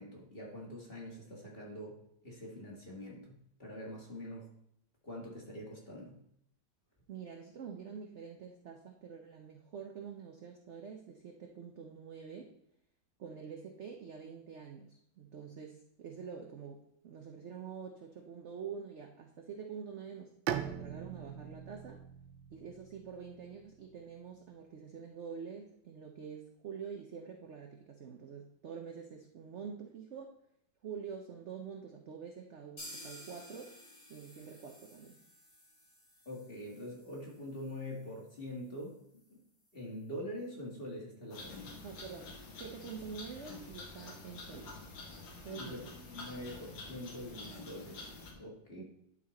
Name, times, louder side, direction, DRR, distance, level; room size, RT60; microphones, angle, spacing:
voice 1, 0.0-4.5 5.0-6.2 36.3-39.0 39.3-39.4 39.7-41.7 45.6-48.8, left 1 dB, 30° left, -2 dB, 1.8 m, -45 dB
voice 2, 7.1-12.5 13.2-20.3 20.6-22.0 22.5-30.4 30.8-33.7 34.1-35.2 41.8-42.3 42.6-44.8 45.4-45.8 48.8-48.9, right 6 dB, 60° right, 2 dB, 0.7 m, -46 dB
Bowed string instrument, 20.5-24.1, right 10 dB, 85° right, 1.3 m, -41 dB
sound 1, 32.8-40.5 40.8-40.9 41.2-41.3 41.7-41.8, left 1 dB, 60° left, 4.2 m, -55 dB
sound 2, 41.3-48.3, left 3 dB, 85° left, 2.1 m, -48 dB
11.0 x 4.3 x 4.1 m, 0.73 s
omnidirectional pair, 2.0 m